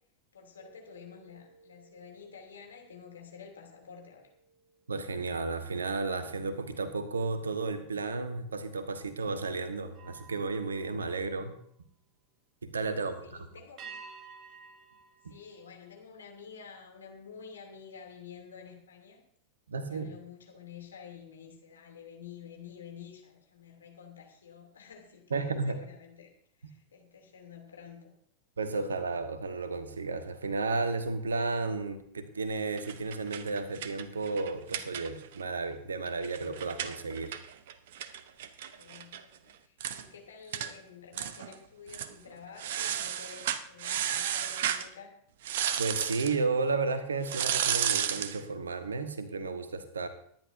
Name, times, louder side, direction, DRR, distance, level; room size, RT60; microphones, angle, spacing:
voice 1, 0.3-4.3 11.3-11.5 13.0-13.9 15.3-19.2 19.7-26.3 26.6-28.1 38.8-45.1, left 6 dB, 70° left, 1 dB, 2.9 m, -50 dB
sound 1, 0.6-6.1 6.6-6.9 9.9-12.1 13.8-16.3, right 5 dB, 35° right, 1.4 m, -54 dB
voice 2, 4.9-11.6 12.6-13.5 15.2-15.3 19.7-20.1 25.3-25.8 28.6-37.3 45.8-50.1, right 3 dB, 70° right, 10 dB, 1.4 m, -33 dB
sound 2, 32.8-35.4 35.7-35.8 36.1-39.2 39.5-39.6 39.8-40.0 40.5-40.7 41.1-41.6 41.9-42.1 42.6-44.9 45.4-46.4 47.2-48.4, right 10 dB, 55° right, 0.9 m, -33 dB
24.0 x 11.0 x 2.7 m, 0.67 s
figure-of-eight pair, 90°, 0 cm